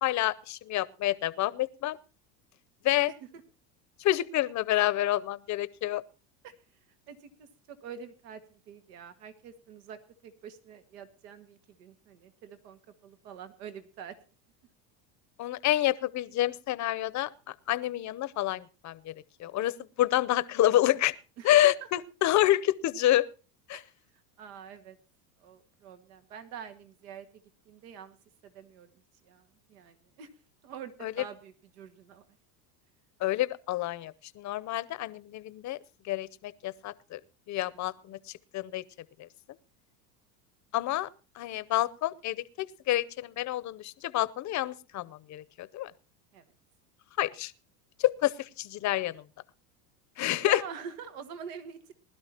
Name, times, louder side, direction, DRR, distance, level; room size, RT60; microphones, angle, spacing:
voice 1, 0.0-2.0 2.8-3.1 4.0-6.0 15.4-19.1 19.4-21.2 21.4-23.3 23.7-23.8 31.0-31.2 33.2-35.8 36.0-37.2 37.5-38.2 38.5-38.8 39.2-39.3 40.7-41.1 41.3-45.9 47.2-47.5 48.0-49.2 50.2-50.6, left 14 dB, 35° left, 0.8 m, -28 dB
voice 2, 3.1-3.4 6.4-6.8 7.1-14.2 21.4-21.7 23.7-23.8 24.4-25.0 25.4-28.2 28.4-28.9 29.2-30.3 30.6-32.3 46.3-46.4 50.4-51.9, right 7 dB, 80° right, 1.9 m, -46 dB
20.0 x 12.0 x 2.9 m
supercardioid pair, 110°, 47 cm